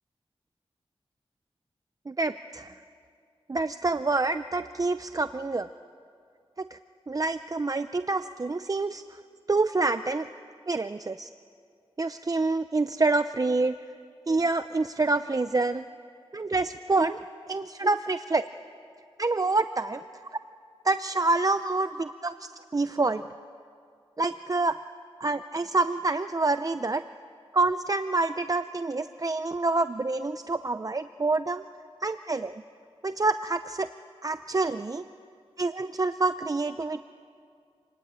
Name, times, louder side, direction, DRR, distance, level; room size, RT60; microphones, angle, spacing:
voice 1, 2.1-2.7 3.5-5.7 6.7-6.8 7.1-9.2 9.5-10.3 10.7-11.3 12.0-13.7 14.3-15.8 16.3-18.5 19.2-20.0 20.8-23.2 24.2-24.8 25.2-27.0 27.5-31.6 32.0-32.6 33.0-33.9 34.2-35.0 35.6-37.0, right 3 dB, 35° right, 11 dB, 0.6 m, -27 dB
27.0 x 20.0 x 8.9 m, 2.3 s
wide cardioid pair, 70°, 10 cm